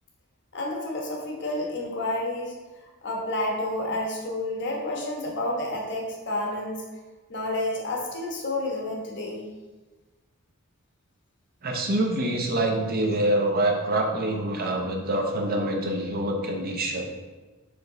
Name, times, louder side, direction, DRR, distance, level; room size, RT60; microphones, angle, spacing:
voice 1, 0.5-6.8 7.3-9.5, left 1 dB, 55° left, -1 dB, 1.3 m, -30 dB
voice 2, 11.6-17.1, right 1 dB, 45° right, 1 dB, 0.8 m, -25 dB
5.3 x 5.1 x 4.0 m, 1.2 s
head